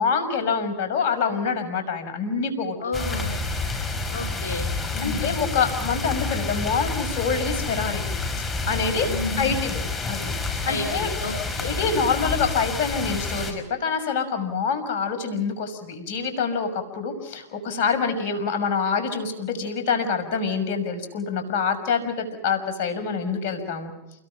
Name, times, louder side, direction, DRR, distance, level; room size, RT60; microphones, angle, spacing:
voice 1, 0.0-2.8 5.0-8.0 8.7-9.1 9.4-9.8 10.1-10.3 10.7-11.1 11.6-23.9, left 5 dB, 60° left, 8 dB, 6.3 m, -26 dB
voice 2, 2.8-3.3 4.1-5.3 9.1-9.6 10.7-11.7, left 2 dB, 85° left, 2 dB, 3.7 m, -31 dB
sound 1, 2.9-13.5, left 3 dB, 20° left, 5.5 m, -29 dB
29.5 x 22.0 x 5.1 m, 0.89 s
hypercardioid pair, 105°, 0 cm